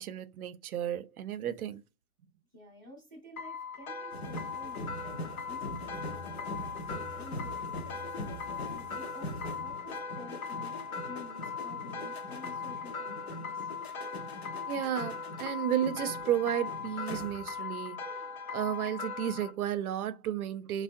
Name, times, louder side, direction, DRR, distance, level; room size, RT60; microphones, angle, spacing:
voice 1, 0.0-1.8 14.7-18.1 18.5-20.8, right 10 dB, 90° right, 0.5 m, -33 dB
voice 2, 2.5-13.7, left 1 dB, 15° right, 0.5 m, -51 dB
sound 1, 3.4-19.5, left 5 dB, 75° left, 0.8 m, -39 dB
sound 2, 4.1-17.7 18.0-18.3, left 1 dB, 50° left, 0.4 m, -43 dB
3.4 x 2.1 x 2.5 m
hypercardioid pair, 170°, 42 cm